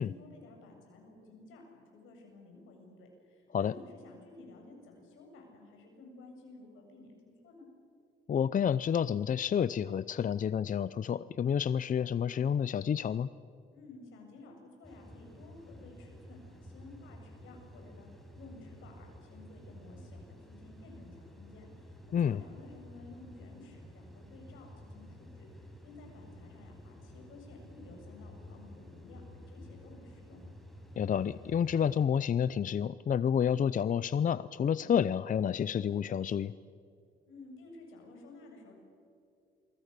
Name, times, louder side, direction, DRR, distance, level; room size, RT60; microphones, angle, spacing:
voice 1, 0.0-7.7 13.7-18.1 18.4-21.9 22.3-25.4 25.8-30.4 37.3-38.7, left 2 dB, 85° left, 2 dB, 7.6 m, -53 dB
voice 2, 8.3-13.3 22.1-22.4 31.0-36.5, left 8 dB, 40° left, 16 dB, 0.6 m, -29 dB
sound 1, 14.8-32.0, left 1 dB, ahead, 5.4 m, -51 dB
29.0 x 23.5 x 6.8 m, 2.5 s
cardioid pair, 90°, 20 cm